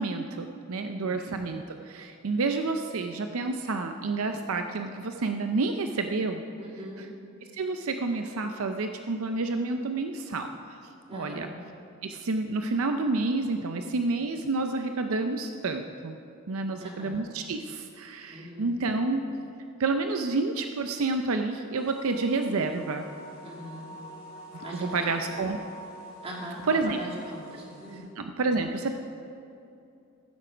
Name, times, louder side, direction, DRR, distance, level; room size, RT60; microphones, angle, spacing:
voice 1, 0.0-6.4 7.0-7.1 7.5-10.8 11.1-11.5 12.0-16.2 16.5-19.2 19.8-23.0 24.5-25.6 26.7-27.0 28.2-29.0, right 3 dB, 75° right, 6 dB, 0.5 m, -29 dB
voice 2, 0.8-1.1 6.6-7.0 11.1-11.5 16.8-17.2 18.3-18.7 23.4-23.9 24.6-25.4 26.2-28.0, equal, 30° right, -3 dB, 2.3 m, -41 dB
sound 1, 21.8-28.0, equal, 10° right, 3.3 m, -46 dB
15.0 x 7.6 x 5.0 m, 2.6 s
head